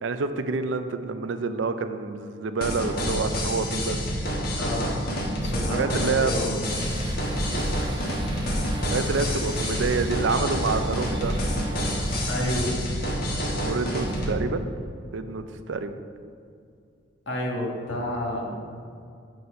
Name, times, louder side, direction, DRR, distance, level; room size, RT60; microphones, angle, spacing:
voice 1, 0.0-4.0 5.7-6.3 7.5-7.8 8.9-11.3 13.3-14.7 15.1-16.0, right 4 dB, 80° right, 10 dB, 0.5 m, -28 dB
sound 1, 2.6-14.3, equal, 55° left, 1.2 m, -28 dB
voice 2, 4.6-5.1 5.4-6.6 12.3-12.7 17.3-18.6, left 1 dB, 90° left, -2 dB, 1.5 m, -30 dB
sound 2, 6.6-12.7, equal, 25° right, 0.7 m, -33 dB
7.6 x 4.0 x 5.5 m, 2.4 s
head